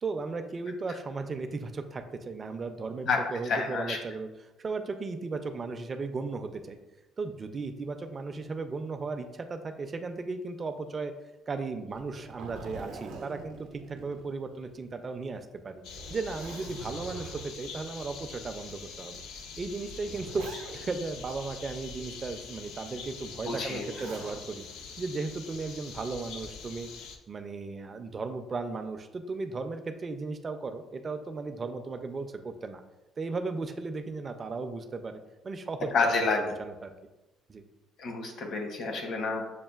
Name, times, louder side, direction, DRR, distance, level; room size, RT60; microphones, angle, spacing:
voice 1, 0.0-4.3 4.6-6.8 7.2-11.1 11.5-15.8 16.1-19.2 19.6-24.6 25.0-26.9 27.3-32.8 33.2-35.9 36.2-36.9 37.5-37.6, right 3 dB, 30° right, 7 dB, 0.3 m, -36 dB
voice 2, 3.1-4.0 23.4-23.8 35.9-36.4 38.0-39.5, left 4 dB, 55° left, 3 dB, 0.8 m, -29 dB
Zipper (clothing), 11.9-14.8 15.2-15.3 15.8-17.7 18.4-18.6 19.5-21.1 23.5-24.4 25.8-26.3, right 4 dB, 80° right, 0.5 m, -45 dB
sound 1, 15.8-27.2, left 5 dB, 85° left, 0.4 m, -44 dB
6.5 x 2.4 x 2.3 m, 1.1 s
cardioid pair, 130°, 0 cm